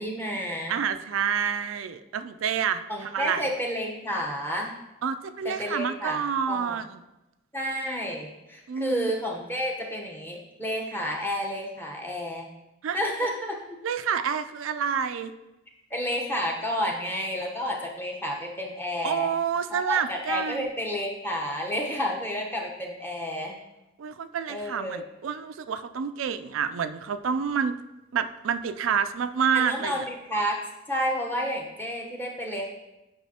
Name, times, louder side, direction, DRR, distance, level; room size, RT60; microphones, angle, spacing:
voice 1, 0.0-0.7 2.9-4.7 5.4-6.2 6.5-6.8 7.5-12.5 12.9-13.5 15.9-19.3 19.7-23.6 24.5-25.0 29.5-30.6 30.9-32.7, equal, 10° left, -1 dB, 0.9 m, -30 dB
voice 2, 0.7-3.5 5.0-7.0 8.7-9.1 12.8-13.0 13.8-15.3 19.0-20.7 24.0-27.7 28.1-30.0, right 7 dB, 90° right, 10 dB, 0.4 m, -28 dB
9.0 x 5.3 x 2.9 m, 0.98 s
head